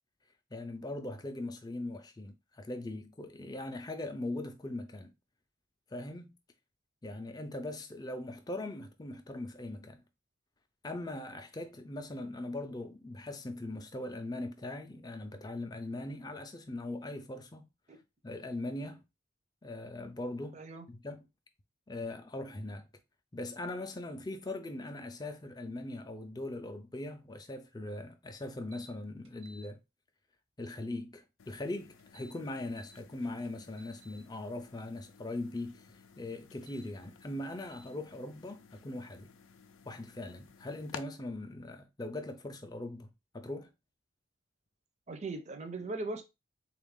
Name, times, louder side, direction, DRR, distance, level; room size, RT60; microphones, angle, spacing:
voice 1, 0.5-5.1 5.9-6.3 7.0-10.0 10.8-17.6 18.2-19.0 19.6-20.6 20.9-21.3 21.9-22.9 23.3-29.8 30.6-39.3 39.9-43.1 43.3-43.7, left 2 dB, 20° left, 0.4 m, -40 dB
voice 2, 20.5-20.9 45.1-46.2, right 2 dB, 35° right, 0.5 m, -39 dB
sound 1, 28.7-28.9 29.3-29.7 32.0-33.0 33.4-34.2 36.5-36.9 37.7-37.9, right 2 dB, 90° right, 1.0 m, -57 dB
sound 2, 31.4-41.0, left 6 dB, 90° left, 0.5 m, -54 dB
3.8 x 2.4 x 3.5 m
head